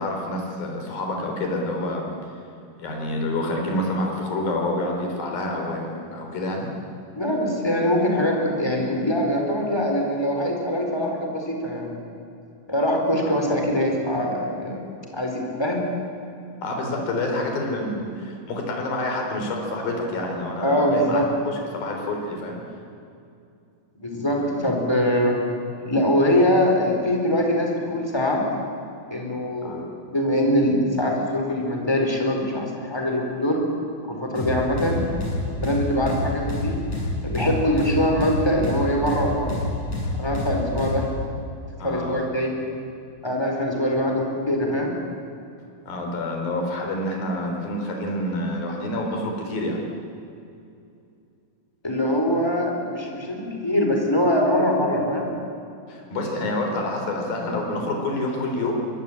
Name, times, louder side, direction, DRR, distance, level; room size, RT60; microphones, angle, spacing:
voice 1, 0.0-2.1 2.8-6.7 16.6-22.6 24.4-24.7 29.6-29.8 41.8-42.2 45.9-49.8 55.9-58.8, left 1 dB, 75° left, 1 dB, 5.6 m, -28 dB
voice 2, 7.1-11.9 12.7-14.9 15.1-15.8 20.6-21.2 24.0-25.4 25.8-28.4 29.1-29.8 30.1-33.6 34.0-35.0 35.6-36.8 37.2-39.6 40.1-41.0 41.8-42.5 43.2-44.9 51.8-55.3, equal, 5° left, 1 dB, 4.2 m, -23 dB
sound 1, 34.4-41.1, left 2 dB, 50° left, 9.3 m, -27 dB
24.5 x 22.0 x 8.8 m, 2.5 s
omnidirectional pair, 4.1 m